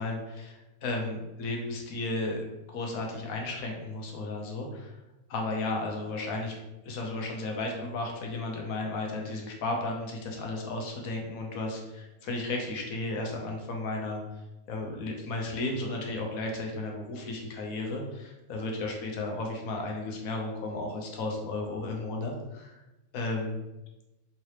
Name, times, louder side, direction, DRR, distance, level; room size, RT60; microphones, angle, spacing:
voice 1, 0.0-2.4 2.7-5.0 5.3-6.6 6.8-14.2 14.7-22.7 23.1-23.6, left 2 dB, 80° left, 1 dB, 1.2 m, -34 dB
3.7 x 3.2 x 2.9 m, 0.99 s
omnidirectional pair, 1.5 m